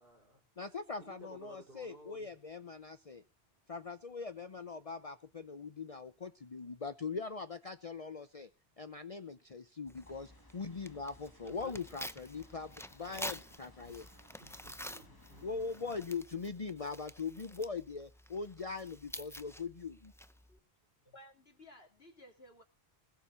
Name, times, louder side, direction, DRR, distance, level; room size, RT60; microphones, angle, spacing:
voice 1, 0.0-0.4 1.0-2.3 7.1-7.2 11.4-11.8 13.8-14.0 14.4-15.6 21.1-21.2, right 1 dB, 60° right, 3 dB, 4.2 m, -56 dB
voice 2, 0.6-3.2 3.7-8.5 8.8-14.1 15.4-20.1, left 4 dB, 35° left, 10 dB, 0.9 m, -41 dB
Tearing, 9.9-20.6, equal, 5° left, 0.6 m, -49 dB
sound 1, 10.0-16.1, left 2 dB, 20° left, 1.8 m, -61 dB
voice 3, 21.1-22.6, left 1 dB, 70° left, 4 dB, 3.3 m, -57 dB
20.5 x 7.5 x 5.6 m, 0.31 s
omnidirectional pair, 1.1 m